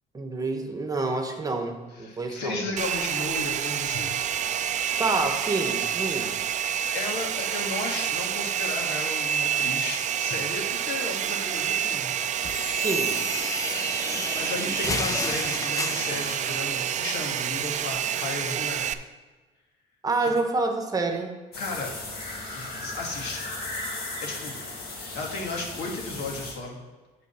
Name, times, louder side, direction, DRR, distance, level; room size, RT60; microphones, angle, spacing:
voice 1, 0.1-2.6 5.0-6.4 12.8-13.2 20.0-21.3, right 3 dB, 20° right, 4 dB, 1.1 m, -28 dB
voice 2, 2.0-4.1 6.9-12.1 12.4-12.6 14.3-18.9 20.2-20.3 21.6-22.0 22.5-23.5 24.2-24.6 24.9-26.8, left 2 dB, 90° left, 0 dB, 1.8 m, -34 dB
Domestic sounds home sounds, 2.8-18.9, right 9 dB, 45° right, 0.4 m, -28 dB
sound 1, 12.3-16.8, left 3 dB, 20° left, 0.5 m, -32 dB
sound 2, 21.5-26.5, left 2 dB, 65° left, 1.9 m, -36 dB
8.3 x 4.1 x 6.9 m, 1.3 s
cardioid pair, 110°, 17 cm